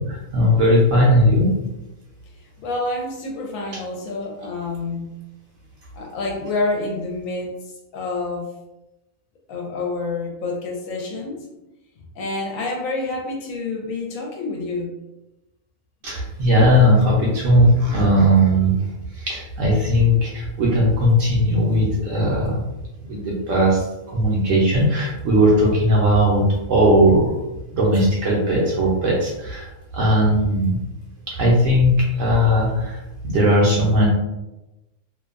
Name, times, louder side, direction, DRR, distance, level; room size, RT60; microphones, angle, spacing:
voice 1, 0.1-1.6 16.0-18.8 19.2-22.6 23.0-23.8 24.1-27.3 27.7-30.8 31.3-34.1, equal, 70° right, -4 dB, 0.9 m, -18 dB
voice 2, 2.6-5.1 5.9-7.6 7.9-8.5 9.5-11.4 12.2-14.9, left 3 dB, 75° left, 0 dB, 0.9 m, -28 dB
2.6 x 2.2 x 2.4 m, 0.98 s
omnidirectional pair, 1.5 m